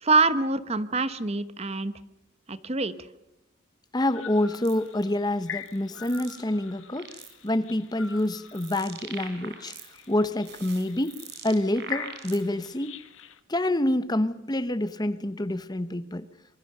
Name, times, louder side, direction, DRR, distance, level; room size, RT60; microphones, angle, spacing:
voice 1, 0.0-1.9 2.5-2.9, right 3 dB, 30° right, 13 dB, 1.0 m, -25 dB
voice 2, 3.9-7.1 7.4-9.7 10.1-13.0 13.5-16.3, left 1 dB, 20° left, 13 dB, 0.9 m, -27 dB
sound 1, 4.0-13.4, left 8 dB, 75° left, 1.6 m, -44 dB
sound 2, 4.6-4.9 5.6-6.4 6.8-7.5 8.0-10.1 10.4-12.7, right 6 dB, 55° right, 4.0 m, -43 dB
26.0 x 23.5 x 6.7 m, 0.90 s
head